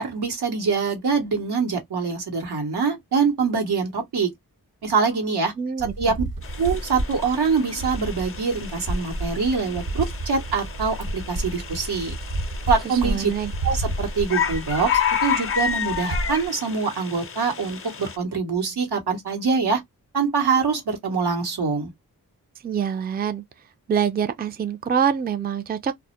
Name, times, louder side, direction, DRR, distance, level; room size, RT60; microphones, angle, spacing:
voice 1, 0.0-4.3 4.8-5.5 5.8-6.2 6.6-12.1 12.7-13.3 13.6-14.9 15.2-19.8 20.1-21.9, right 5 dB, 90° right, 0.9 m, -24 dB
voice 2, 5.6-5.9 12.8-13.5 22.6-23.4 23.9-25.9, right 7 dB, 25° right, 0.4 m, -25 dB
sound 1, 5.8-16.5, right 1 dB, 65° right, 1.0 m, -31 dB
sound 2, 6.4-18.2, left 7 dB, 35° left, 0.5 m, -31 dB
2.1 x 2.0 x 2.8 m
cardioid pair, 45°, 38 cm